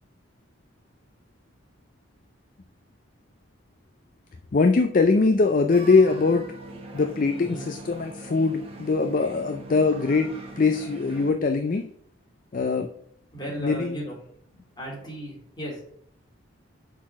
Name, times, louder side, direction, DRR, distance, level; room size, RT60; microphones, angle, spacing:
voice 1, 4.5-6.4 6.9-10.3 10.6-11.8 12.5-12.9 13.6-14.0, left 4 dB, 40° left, 6 dB, 0.4 m, -22 dB
sound 1, 5.7-11.3, right 2 dB, 30° right, 1.0 m, -41 dB
voice 2, 7.4-7.7 13.3-14.2 14.5-15.8, right 1 dB, 20° left, -3 dB, 2.4 m, -36 dB
6.3 x 4.1 x 5.8 m, 0.64 s
head